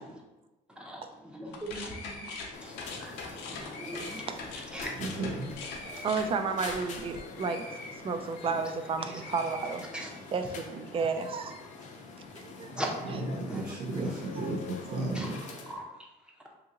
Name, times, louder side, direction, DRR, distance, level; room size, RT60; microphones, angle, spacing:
voice 1, 0.8-4.3 4.7-5.1 8.4-8.6 9.9-10.1 12.8-13.1 13.5-13.7 15.1-15.4 15.7-15.8, right 1 dB, 5° right, -1 dB, 0.7 m, -40 dB
sound 1, 1.5-8.9 9.2-10.4, left 3 dB, 85° left, 0.6 m, -43 dB
sound 2, 2.5-15.8, left 4 dB, 45° left, 0.6 m, -45 dB
voice 2, 3.9-4.4 5.8-9.9 10.3-11.6 12.3-12.7 13.1-13.2 14.4-14.5 14.9-15.0 15.4-15.6, right 5 dB, 35° right, 8 dB, 0.3 m, -33 dB
voice 3, 5.0-5.5 13.3-15.4, right 2 dB, 55° right, -4 dB, 0.7 m, -33 dB
2.7 x 2.7 x 3.8 m, 1.0 s
cardioid pair, 110°, 17 cm